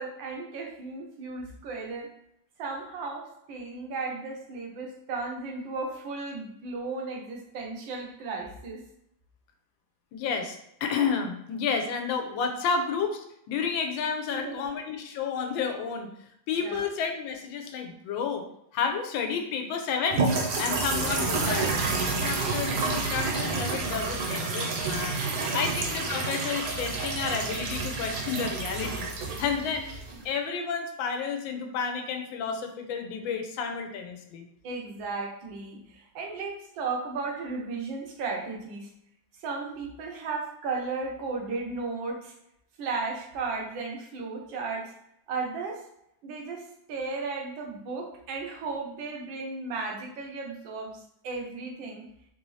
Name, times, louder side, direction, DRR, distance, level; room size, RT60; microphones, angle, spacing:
voice 1, 0.0-2.1 2.6-8.8 14.3-14.7 16.6-16.8 25.2-25.7 34.6-38.9 39.4-42.3 42.8-44.9 45.3-45.8 46.2-52.0, right 4 dB, 85° right, 1 dB, 1.5 m, -35 dB
voice 2, 10.1-16.1 16.5-18.4 18.7-20.3 20.6-21.7 22.2-25.3 25.5-29.1 29.4-29.9 30.2-34.5, left 6 dB, 90° left, 5 dB, 1.4 m, -31 dB
sound 1, 20.1-30.3, right 3 dB, 65° right, 1.2 m, -29 dB
4.1 x 2.7 x 3.1 m, 0.76 s
omnidirectional pair, 2.0 m